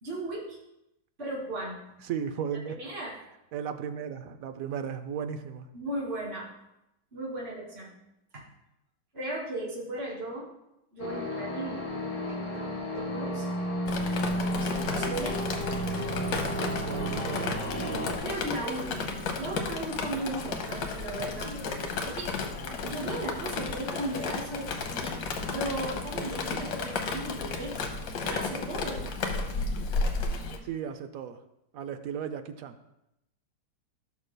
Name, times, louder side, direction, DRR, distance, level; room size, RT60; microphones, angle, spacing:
voice 1, 0.0-0.6 1.2-1.9 2.8-3.2 5.7-6.5 7.1-8.0 8.3-8.4 9.1-10.5 10.9-13.5 14.4-15.4 18.2-21.5 22.0-22.3 22.8-25.1 25.4-27.8 28.2-29.1, right 1 dB, 35° right, -5 dB, 2.4 m, -36 dB
voice 2, 2.0-2.8 3.5-5.7 16.6-17.6 30.6-31.4 31.7-32.8, right 8 dB, 65° right, 8 dB, 0.9 m, -35 dB
sound 1, 11.0-18.2, equal, 20° left, 1.9 m, -32 dB
Drip, 13.9-30.6, left 4 dB, 85° left, 1.6 m, -33 dB
15.5 x 6.5 x 2.2 m, 0.86 s
omnidirectional pair, 1.9 m